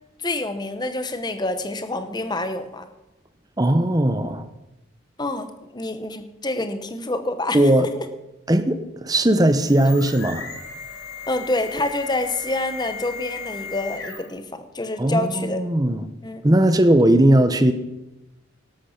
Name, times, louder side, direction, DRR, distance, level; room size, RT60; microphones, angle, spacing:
voice 1, 0.2-2.8 5.2-7.6 11.3-15.6 16.2-16.4, left 2 dB, 20° left, 9 dB, 1.0 m, -27 dB
voice 2, 3.6-4.5 7.5-7.9 8.5-10.5 15.0-16.1 16.4-17.7, right 1 dB, 20° right, 10 dB, 0.8 m, -18 dB
sound 1, 9.2-14.5, left 5 dB, 85° left, 3.3 m, -36 dB
12.5 x 12.0 x 5.9 m, 0.95 s
head